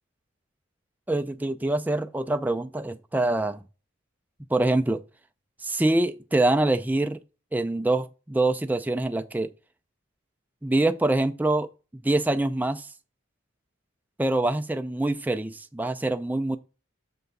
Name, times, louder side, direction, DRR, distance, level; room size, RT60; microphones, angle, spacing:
voice 1, 1.1-3.6 4.5-5.0 5.6-7.2 7.5-9.5 10.6-11.7 12.0-12.9 14.2-16.6, right 2 dB, 10° right, 0.4 m, -25 dB
6.8 x 3.4 x 5.3 m
head